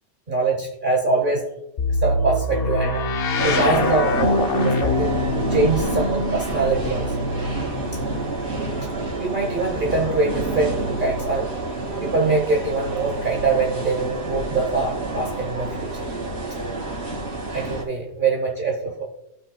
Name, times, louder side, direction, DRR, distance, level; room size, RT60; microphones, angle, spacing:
voice 1, 0.3-1.4 1.9-3.0 3.4-7.1 9.2-11.5 12.0-16.1 17.5-19.0, right 3 dB, 45° right, 0 dB, 1.2 m, -23 dB
sound 1, 1.8-11.6 12.6-13.6, left 2 dB, 55° left, 0.9 m, -26 dB
sound 2, 3.4-17.8, right 2 dB, 70° right, 2.9 m, -29 dB
15.0 x 6.0 x 2.3 m, 0.84 s
omnidirectional pair, 1.3 m